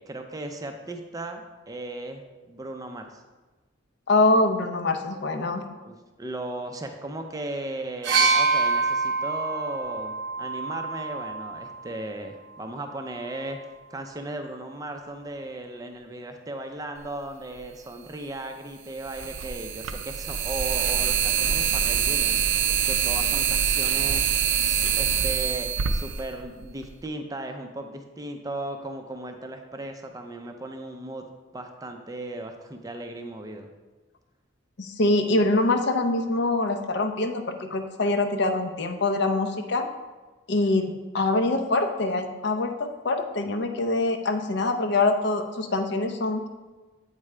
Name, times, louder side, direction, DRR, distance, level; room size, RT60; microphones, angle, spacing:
voice 1, 0.0-2.2 2.5-3.2 5.8-13.6 13.9-22.4 22.8-31.2 31.5-33.7, right 2 dB, 15° right, 5 dB, 0.5 m, -36 dB
voice 2, 4.1-5.6 34.8-39.9 40.5-46.5, left 2 dB, 55° left, 6 dB, 0.6 m, -24 dB
sound 1, 8.0-11.8 12.9-13.0, right 4 dB, 55° right, 0.8 m, -26 dB
sound 2, 17.6-17.7 19.0-26.9, right 8 dB, 80° right, 0.5 m, -25 dB
8.1 x 4.8 x 3.2 m, 1.2 s
head